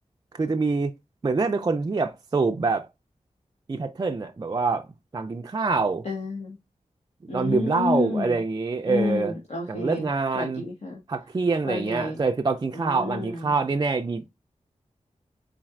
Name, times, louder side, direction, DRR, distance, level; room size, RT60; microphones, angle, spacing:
voice 1, 0.3-0.9 1.2-2.9 3.7-4.9 5.1-6.0 7.2-9.4 9.7-10.6 11.1-14.2, right 4 dB, 30° right, 0.4 m, -25 dB
voice 2, 6.0-6.6 7.3-8.4 8.9-10.1 10.3-11.0 11.7-12.2 12.7-13.4, left 3 dB, 60° left, 1.1 m, -30 dB
4.2 x 3.8 x 2.4 m
wide cardioid pair, 85°, 13 cm